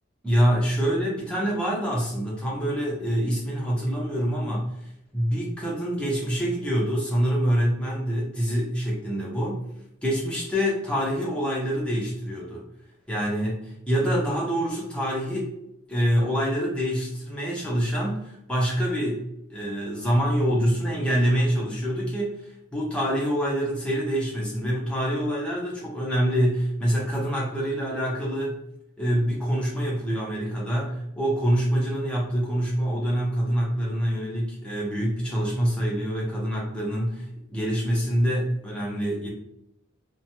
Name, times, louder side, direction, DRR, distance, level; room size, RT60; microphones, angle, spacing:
voice 1, 0.2-4.6 5.1-9.6 10.0-12.6 13.1-15.5 15.9-19.2 19.5-28.6 29.0-39.3, equal, 5° left, -5 dB, 0.7 m, -26 dB
3.0 x 2.2 x 2.7 m, 0.82 s
head